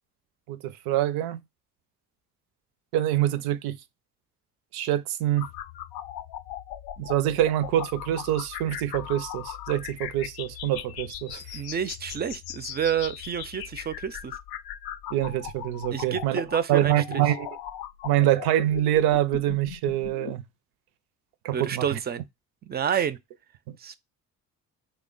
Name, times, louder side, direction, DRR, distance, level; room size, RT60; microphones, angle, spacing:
voice 1, 0.5-1.4 2.9-3.8 4.7-5.5 7.0-11.4 15.1-16.4 16.7-17.5 18.0-20.4 21.4-22.0 22.9-23.0 23.7-23.8, right 13 dB, 80° right, 0.5 m, -25 dB
sound 1, 5.4-20.3, left 11 dB, 80° left, 0.5 m, -39 dB
voice 2, 11.5-14.3 15.9-17.2 21.5-22.3 22.6-23.2 23.8-23.9, right 8 dB, 30° right, 0.4 m, -29 dB
3.2 x 2.2 x 3.7 m
supercardioid pair, 80°, 37 cm